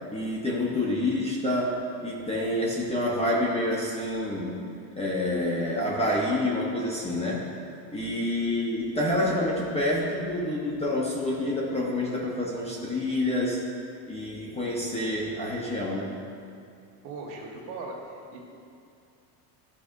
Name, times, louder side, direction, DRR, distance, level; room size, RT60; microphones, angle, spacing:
voice 1, 0.1-4.6 5.0-7.5 7.9-13.6 14.1-16.1, left 1 dB, 15° left, -4 dB, 0.9 m, -28 dB
voice 2, 8.0-8.4 17.0-18.4, right 3 dB, 55° right, -2 dB, 1.5 m, -40 dB
11.5 x 4.3 x 2.6 m, 2.6 s
supercardioid pair, 130°, 48 cm